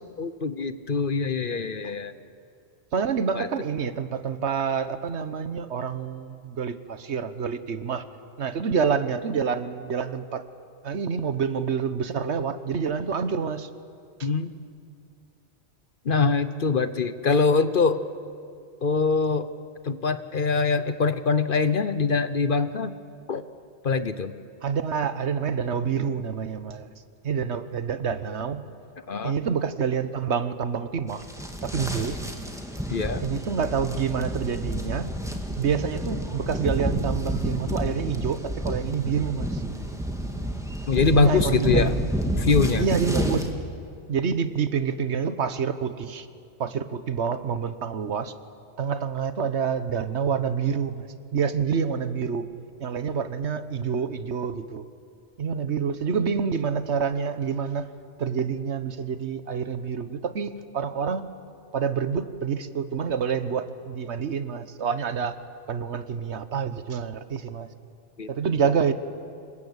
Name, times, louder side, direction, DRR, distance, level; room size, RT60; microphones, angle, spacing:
voice 1, 0.2-2.1 3.3-3.5 14.2-14.5 16.0-18.0 18.8-19.5 19.8-22.9 23.3-23.4 23.8-24.3 29.1-29.3 32.9-33.2 40.9-41.9 42.4-42.8 68.2-68.3, left 4 dB, 50° left, 12 dB, 1.0 m, -23 dB
voice 2, 2.9-8.0 8.4-10.4 10.8-13.7 14.2-14.3 24.6-26.9 27.2-28.7 29.2-31.2 31.6-32.2 33.2-35.1 35.6-39.6 41.1-42.0 42.8-43.5 44.1-46.3 46.6-48.3 48.8-51.1 51.3-52.5 52.8-54.8 55.4-57.9 58.2-61.3 61.7-65.4 65.7-67.7 68.3-68.9, right 6 dB, 75° right, 12 dB, 1.3 m, -27 dB
sound 1, 31.1-43.5, right 1 dB, 5° right, 2.1 m, -30 dB
26.5 x 22.5 x 8.2 m, 2.3 s
omnidirectional pair, 1.2 m